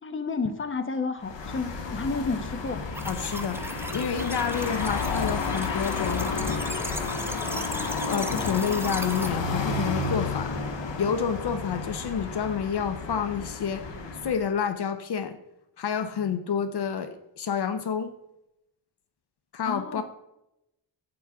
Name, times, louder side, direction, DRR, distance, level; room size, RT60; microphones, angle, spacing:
voice 1, 0.0-2.9 19.7-20.0, left 4 dB, 30° left, 8 dB, 1.0 m, -31 dB
sound 1, 1.2-14.5, left 4 dB, 90° left, 1.6 m, -31 dB
sound 2, 2.9-9.3, right 1 dB, 5° right, 0.8 m, -38 dB
voice 2, 3.1-3.6 3.9-6.3 8.0-10.6 11.0-13.8 14.2-15.4 15.8-18.1 19.5-20.0, left 7 dB, 65° left, 10 dB, 0.8 m, -29 dB
11.0 x 8.7 x 3.5 m, 0.86 s
wide cardioid pair, 130°, 43 cm